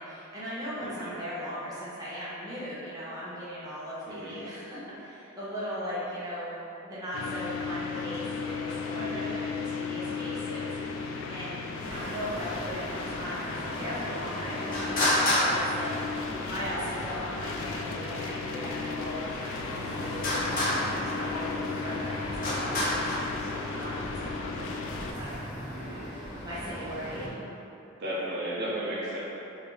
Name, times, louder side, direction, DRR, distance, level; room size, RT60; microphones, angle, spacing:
voice 1, 0.0-22.8 23.7-25.4 26.4-27.4, equal, 20° right, -10 dB, 0.8 m, -38 dB
voice 2, 0.8-1.1 4.1-4.4 8.9-9.2 14.6-14.9 19.8-20.1 25.7-26.0 28.0-29.2, right 1 dB, 55° right, -8 dB, 0.6 m, -35 dB
sound 1, 7.1-25.1, left 4 dB, 70° left, 0.3 m, -35 dB
Traffic noise roadway noise, 11.8-27.3, left 1 dB, 40° left, 0.8 m, -33 dB
4.3 x 2.5 x 3.1 m, 2.9 s
head